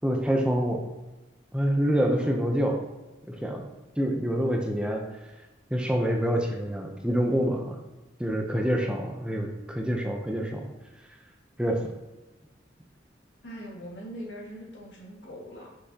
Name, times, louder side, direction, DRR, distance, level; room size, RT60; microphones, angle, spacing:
voice 1, 0.0-0.8 1.5-2.8 3.3-3.6 4.0-5.0 5.7-7.8 8.2-10.7 11.6-11.9, equal, 5° right, 1 dB, 0.6 m, -26 dB
voice 2, 8.6-9.4 13.4-15.7, equal, 80° left, -2 dB, 1.8 m, -43 dB
6.5 x 5.7 x 2.8 m, 1.1 s
head